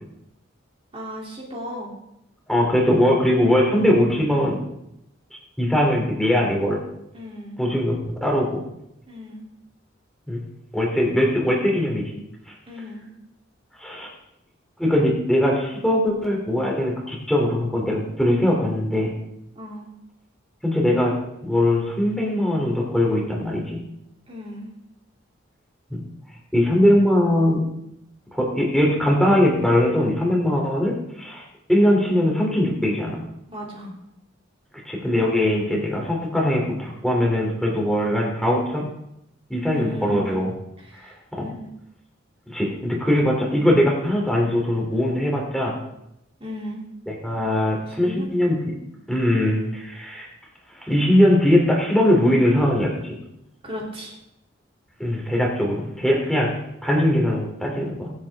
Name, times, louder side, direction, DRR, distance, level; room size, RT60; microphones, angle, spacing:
voice 1, 0.9-1.9 7.1-7.6 9.1-9.4 12.7-13.1 19.5-19.9 24.3-24.7 33.5-33.9 39.7-40.4 40.8-41.7 46.4-46.9 47.9-48.3 53.6-54.1, equal, 30° right, -3 dB, 3.0 m, -35 dB
voice 2, 2.5-4.6 5.6-6.8 7.6-8.6 10.3-10.4 10.7-12.1 13.8-14.1 14.8-19.1 20.6-21.2 21.4-23.8 25.9-26.0 26.5-27.6 28.3-33.2 34.8-38.9 39.5-40.5 41.0-41.5 42.5-45.8 47.1-48.7 49.1-50.3 50.8-53.2 55.0-58.1, left 1 dB, ahead, -1 dB, 3.0 m, -21 dB
23.5 x 8.4 x 3.6 m, 0.84 s
head